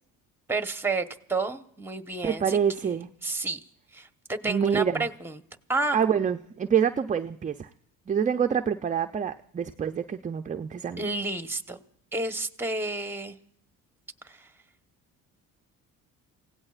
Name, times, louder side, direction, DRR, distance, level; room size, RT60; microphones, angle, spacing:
voice 1, 0.5-2.6 3.2-3.6 3.9-5.3 5.7-6.0 11.0-11.8 12.1-13.4 14.2-14.5, right 3 dB, 5° right, 9 dB, 1.1 m, -30 dB
voice 2, 2.2-3.1 4.4-5.1 5.9-7.7 8.1-11.0, right 7 dB, 20° right, 7 dB, 0.5 m, -26 dB
28.5 x 17.0 x 2.4 m, 0.70 s
cardioid pair, 90°, 35 cm